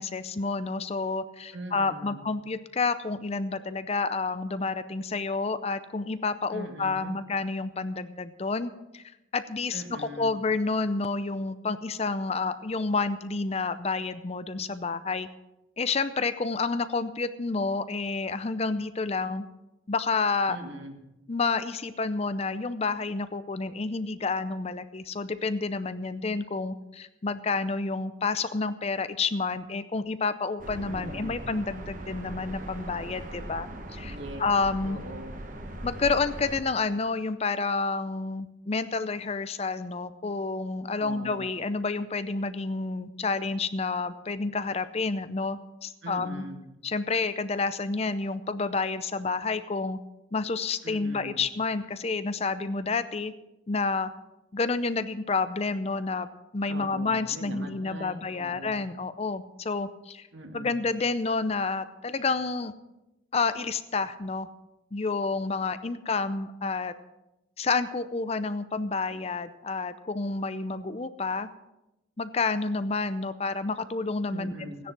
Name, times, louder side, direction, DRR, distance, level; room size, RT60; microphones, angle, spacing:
voice 1, 0.0-9.0 9.3-15.3 15.8-19.4 19.9-20.6 21.3-35.0 35.8-46.4 46.8-50.0 50.3-53.3 53.7-54.1 54.5-56.3 56.5-60.3 60.5-62.7 63.3-64.5 64.9-66.9 67.6-71.5 72.2-74.5 74.8-74.9, left 4 dB, 30° left, 12 dB, 0.5 m, -29 dB
voice 2, 1.5-2.2 6.5-7.2 9.7-10.3 20.5-21.0 30.9-31.4 34.0-34.4 34.8-35.4 41.0-41.5 46.0-46.6 50.8-51.4 56.7-58.8 60.3-60.8 74.3-74.8, right 1 dB, 65° right, 4 dB, 2.0 m, -41 dB
sound 1, 30.6-36.6, right 1 dB, 40° right, 1.3 m, -40 dB
16.0 x 10.0 x 6.0 m, 0.94 s
head